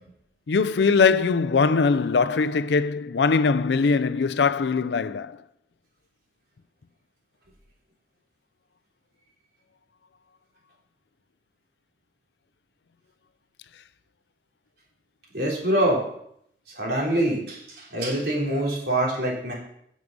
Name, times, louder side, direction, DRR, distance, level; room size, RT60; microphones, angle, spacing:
voice 1, 0.5-5.4, left 4 dB, 75° left, 0.5 m, -21 dB
voice 2, 15.3-16.0 16.8-19.5, right 1 dB, 65° right, 3.3 m, -24 dB
9.6 x 7.5 x 5.3 m
head